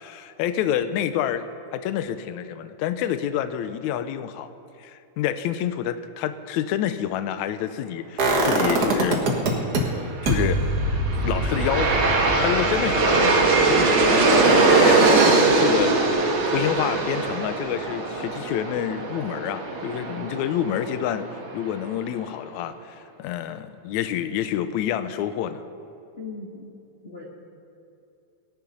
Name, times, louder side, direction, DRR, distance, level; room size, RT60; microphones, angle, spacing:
voice 1, 0.0-1.5 1.7-4.5 4.8-9.2 10.2-10.6 11.2-21.3 21.5-25.6, left 10 dB, 75° left, 12 dB, 1.8 m, -28 dB
sound 1, 8.2-9.8 10.3-16.1 16.4-16.5, right 2 dB, 50° right, 1.3 m, -26 dB
Aircraft, 10.6-21.7, right 3 dB, 70° right, 3.0 m, -21 dB
voice 2, 26.1-26.7 27.0-27.3, left 3 dB, 55° left, -4 dB, 0.6 m, -38 dB
17.5 x 10.5 x 5.4 m, 2.7 s
omnidirectional pair, 3.7 m